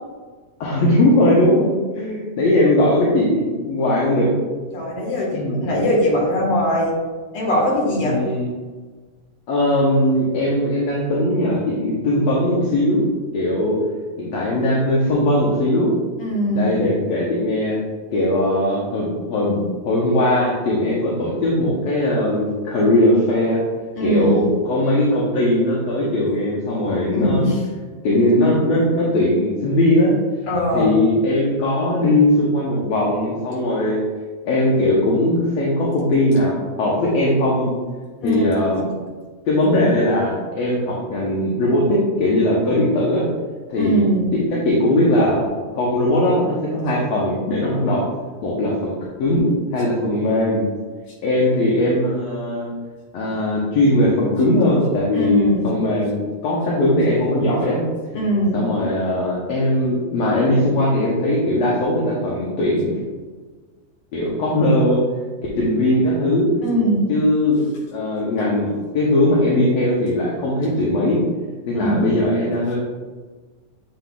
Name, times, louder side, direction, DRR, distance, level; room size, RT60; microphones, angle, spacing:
voice 1, 0.6-4.3 5.3-5.6 8.0-8.5 9.5-13.0 13.3-13.8 14.2-15.9 16.5-17.8 18.1-23.6 24.0-27.5 28.0-30.1 30.7-34.0 34.5-37.7 38.2-38.9 39.5-43.3 43.7-44.0 44.5-48.0 48.4-48.9 49.2-50.7 51.2-52.7 53.1-57.8 58.5-62.9 64.1-65.0 65.6-66.5 67.1-67.6 67.9-68.7 68.9-71.2 71.7-72.8, left 1 dB, 65° left, -6 dB, 1.9 m, -19 dB
voice 2, 4.7-6.9 7.3-8.2 16.2-16.8 24.0-24.6 27.1-27.6 30.5-30.9 38.2-38.4 43.8-44.3 55.1-55.7 58.1-58.6 66.6-67.1 71.7-72.1, equal, 50° left, -4 dB, 2.4 m, -21 dB
7.5 x 5.8 x 2.4 m, 1.4 s
omnidirectional pair, 3.7 m